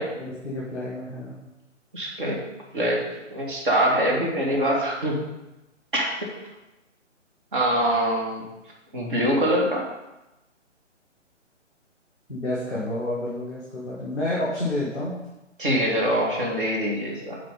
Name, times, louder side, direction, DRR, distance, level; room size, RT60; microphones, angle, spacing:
voice 1, 0.1-1.4 12.3-15.2, left 1 dB, ahead, -13 dB, 0.7 m, -29 dB
voice 2, 1.9-2.4 2.7-3.0 3.3-5.3 5.9-6.3 7.5-8.4 8.9-9.9 15.6-17.4, equal, 45° right, -2 dB, 2.0 m, -24 dB
7.8 x 4.1 x 5.4 m, 0.98 s
figure-of-eight pair, 140°, 37 cm